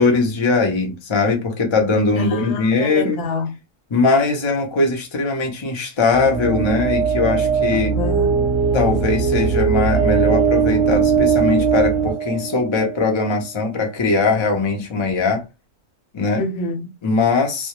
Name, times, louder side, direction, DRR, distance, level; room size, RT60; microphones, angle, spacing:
voice 1, 0.0-3.2 3.9-7.9 8.7-15.4 16.1-16.4 17.0-17.7, left 3 dB, 40° left, 0.4 m, -20 dB
voice 2, 2.2-3.5 7.7-8.3 16.4-16.9, left 3 dB, 70° left, 0.9 m, -27 dB
sound 1, 6.1-13.1, right 6 dB, 30° right, 0.7 m, -19 dB
2.2 x 2.0 x 2.8 m
omnidirectional pair, 1.3 m